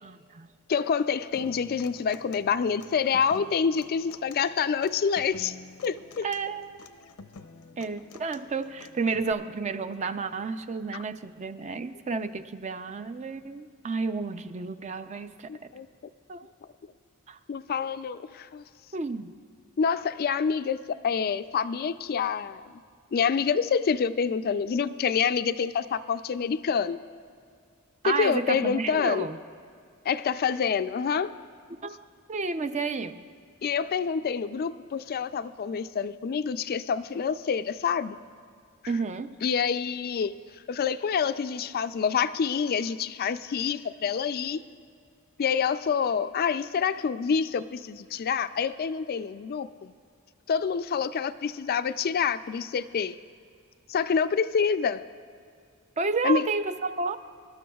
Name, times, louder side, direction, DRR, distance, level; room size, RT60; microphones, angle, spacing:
voice 1, 0.0-0.5 6.2-6.8 7.8-15.7 16.3-16.5 17.3-17.4 18.9-19.3 28.0-29.4 31.7-32.0 32.3-33.2 38.9-39.4 56.0-57.2, right 4 dB, 30° right, 10 dB, 0.5 m, -31 dB
voice 2, 0.7-5.6 5.8-6.3 15.5-15.9 17.5-18.6 19.8-20.8 21.0-22.6 23.1-27.0 28.1-29.3 30.1-31.3 33.6-38.2 39.4-40.3 40.7-44.6 45.4-49.9 50.5-53.2 53.9-55.0 56.2-56.5, left 6 dB, 45° left, 13 dB, 0.3 m, -27 dB
Human voice / Acoustic guitar, 1.3-9.3, left 4 dB, 85° left, 0.6 m, -48 dB
25.5 x 12.5 x 2.3 m, 2.3 s
head